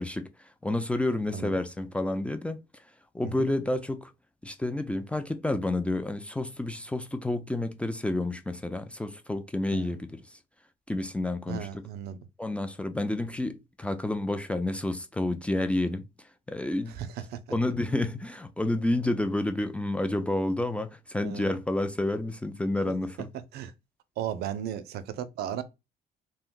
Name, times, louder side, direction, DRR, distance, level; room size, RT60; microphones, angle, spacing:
voice 1, 0.0-2.6 3.1-4.1 4.4-10.4 10.9-11.8 12.4-16.1 16.5-16.9 17.5-23.3, left 1 dB, 5° left, 0.4 m, -30 dB
voice 2, 11.5-12.2 17.0-17.4 21.2-21.6 23.5-23.7 24.2-25.6, right 10 dB, 70° right, 0.5 m, -35 dB
2.5 x 2.1 x 3.7 m
cardioid pair, 110°, 17 cm